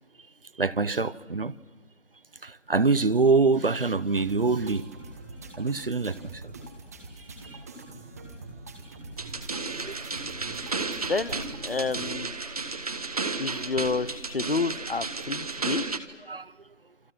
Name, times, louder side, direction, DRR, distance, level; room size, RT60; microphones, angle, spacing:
voice 1, 0.6-1.5 2.4-4.9 5.6-6.3 9.8-9.9 10.2-10.3 13.6-13.7 16.3-16.5, right 4 dB, 50° right, 0.9 m, -25 dB
sound 1, 4.2-12.2, right 2 dB, 15° right, 1.3 m, -44 dB
sound 2, 9.2-16.0, right 3 dB, 30° right, 1.3 m, -33 dB
voice 2, 11.1-12.3 13.4-15.8, left 4 dB, 55° left, 1.0 m, -29 dB
28.5 x 25.5 x 6.0 m
figure-of-eight pair, 160°, 36 cm